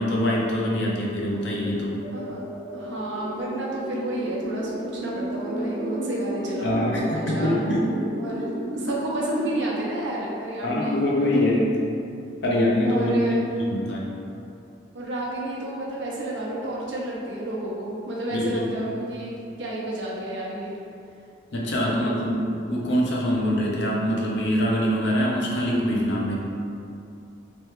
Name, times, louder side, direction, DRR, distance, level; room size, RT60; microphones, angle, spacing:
voice 1, 0.0-2.1 6.6-7.9 10.6-11.7 12.4-14.1 18.3-18.7 21.5-26.4, left 1 dB, 65° left, -3 dB, 0.6 m, -24 dB
sound 1, 2.0-10.1, right 1 dB, 45° right, 0.5 m, -33 dB
voice 2, 2.7-7.6 8.2-11.5 12.8-13.4 14.9-20.8 21.6-22.1, right 1 dB, 70° right, -4 dB, 0.7 m, -31 dB
3.1 x 3.0 x 3.2 m, 2.6 s
head